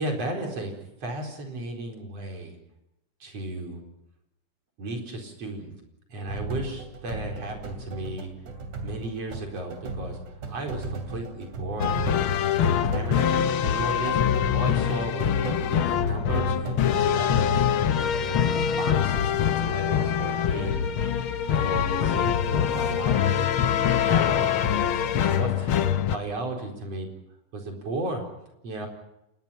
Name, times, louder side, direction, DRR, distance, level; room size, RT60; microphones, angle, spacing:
voice 1, 0.0-2.6 3.2-3.8 4.8-5.7 6.1-8.3 8.8-10.2 10.5-11.9 12.6-15.3 15.7-17.7 18.2-20.9 21.5-23.5 23.9-24.5 24.9-25.7 26.1-27.1 27.5-28.3 28.6-28.9, right 2 dB, 50° right, 2 dB, 5.4 m, -35 dB
sound 1, 6.3-17.1, right 2 dB, 70° right, 4.2 m, -36 dB
sound 2, 11.8-26.2, left 8 dB, 65° left, 1.3 m, -24 dB
28.0 x 20.5 x 5.8 m, 0.86 s
omnidirectional pair, 3.6 m